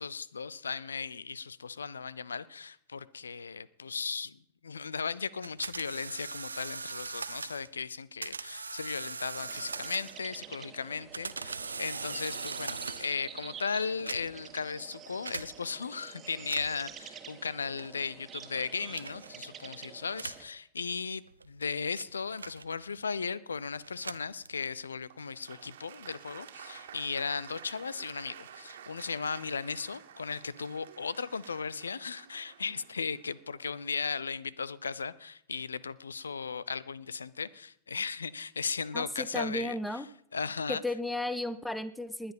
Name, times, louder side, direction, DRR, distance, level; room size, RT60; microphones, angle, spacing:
voice 1, 0.0-4.4 4.6-39.8 40.3-40.8, left 5 dB, 75° left, 0.6 m, -36 dB
sound 1, 5.4-7.7 8.2-10.3 10.9-13.3 13.9-14.5 15.3-15.5 16.4-16.9 17.8-18.1 18.9-19.3 20.1-20.5 21.3-23.0 23.8-24.8, right 4 dB, 80° right, 0.6 m, -40 dB
sound 2, 9.4-20.4, right 8 dB, 25° right, 1.7 m, -48 dB
Applause, 25.1-34.0, right 9 dB, 65° right, 1.7 m, -51 dB
voice 2, 38.9-40.1 40.7-42.3, left 1 dB, 5° left, 0.8 m, -34 dB
20.0 x 9.9 x 5.4 m
figure-of-eight pair, 95°, 0 cm